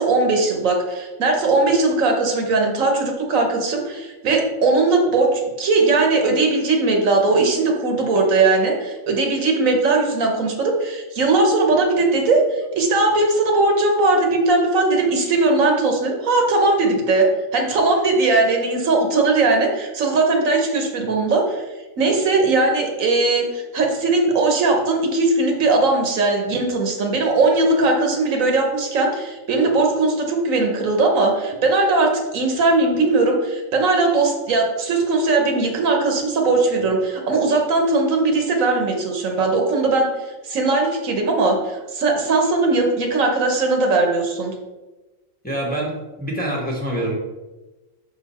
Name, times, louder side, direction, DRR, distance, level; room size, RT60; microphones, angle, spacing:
voice 1, 0.0-21.6 22.0-40.1 40.4-44.5, right 3 dB, 80° right, 2 dB, 1.4 m, -19 dB
voice 2, 45.4-47.1, right 1 dB, 5° left, -3 dB, 1.2 m, -25 dB
6.3 x 4.1 x 4.2 m, 1.1 s
omnidirectional pair, 1.4 m